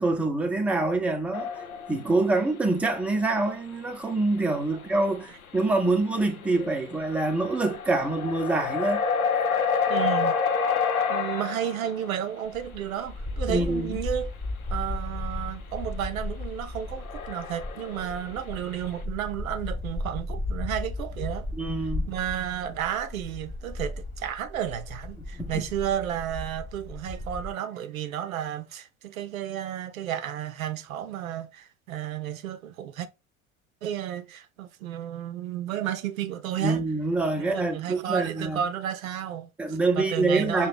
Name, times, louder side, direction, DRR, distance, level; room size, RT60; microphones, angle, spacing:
voice 1, 0.0-1.5 1.9-9.0 13.5-13.9 21.5-22.1 25.3-25.6 36.6-38.6 39.6-40.7, right 2 dB, 5° right, 0.6 m, -25 dB
sound 1, 1.3-2.2 2.9-3.0 4.4-4.5 4.8-5.0 5.5-5.6 5.9-12.2 16.4-16.5 16.8-18.4, left 6 dB, 85° left, 0.6 m, -28 dB
voice 2, 9.9-10.4 11.1-14.3 14.7-21.5 22.1-33.1 33.8-36.8 37.4-40.7, right 10 dB, 75° right, 0.6 m, -32 dB
sound 2, 12.5-27.5, left 2 dB, 25° left, 0.8 m, -35 dB
5.6 x 2.2 x 3.5 m
figure-of-eight pair, 70°, 42 cm